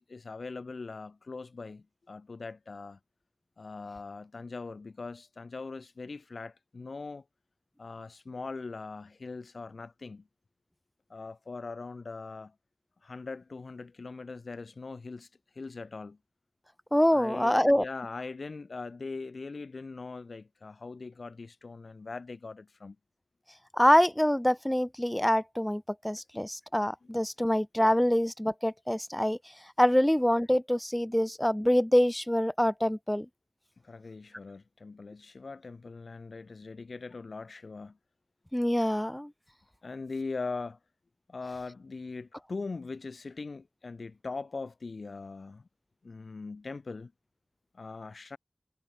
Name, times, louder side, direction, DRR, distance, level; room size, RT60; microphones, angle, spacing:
voice 1, 0.0-3.0 3.6-7.2 7.8-10.2 11.1-12.5 13.0-15.3 15.5-16.2 17.1-23.0 33.8-38.0 39.8-40.8 41.3-45.6 46.0-47.1 47.7-48.4, left 3 dB, 85° left, 4.1 m, -41 dB
voice 2, 16.9-17.8 23.8-29.4 29.8-33.3 38.5-39.3, equal, 10° left, 0.4 m, -25 dB
wide cardioid pair, 45°, 0 cm